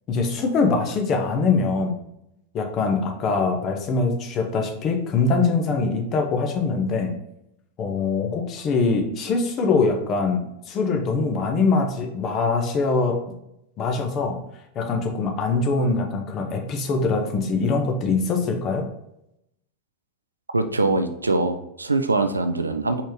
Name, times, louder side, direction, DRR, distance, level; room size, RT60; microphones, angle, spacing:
voice 1, 0.1-2.0 2.5-7.1 7.8-13.2 13.8-14.4 14.7-18.9, left 4 dB, 30° left, 3 dB, 0.8 m, -23 dB
voice 2, 20.5-23.0, right 3 dB, 80° right, 9 dB, 0.4 m, -23 dB
4.3 x 3.6 x 3.0 m, 0.81 s
figure-of-eight pair, 90°, 0 cm